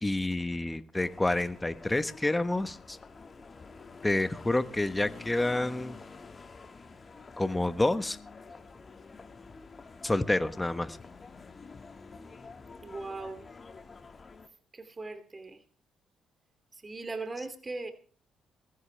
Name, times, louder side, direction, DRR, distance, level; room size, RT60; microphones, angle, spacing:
voice 1, 0.0-3.0 4.0-6.0 7.4-8.2 10.0-11.0, left 2 dB, 15° left, 12 dB, 1.2 m, -28 dB
sound 1, 1.0-14.5, left 4 dB, 35° left, 2.0 m, -49 dB
voice 2, 12.8-13.5 14.7-15.6 16.8-17.9, right 3 dB, 25° right, 9 dB, 2.7 m, -39 dB
20.5 x 15.0 x 3.4 m, 0.40 s
cardioid pair, 90°, 0 cm